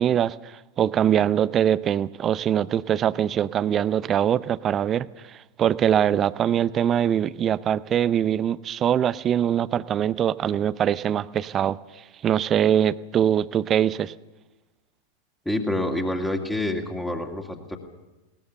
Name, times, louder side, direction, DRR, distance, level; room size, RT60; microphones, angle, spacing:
voice 1, 0.0-11.8 12.2-14.1, right 9 dB, 25° right, 19 dB, 0.6 m, -23 dB
voice 2, 15.5-17.8, left 1 dB, 5° left, 2 dB, 2.3 m, -27 dB
20.5 x 19.0 x 7.0 m, 1.1 s
figure-of-eight pair, 90°, 0 cm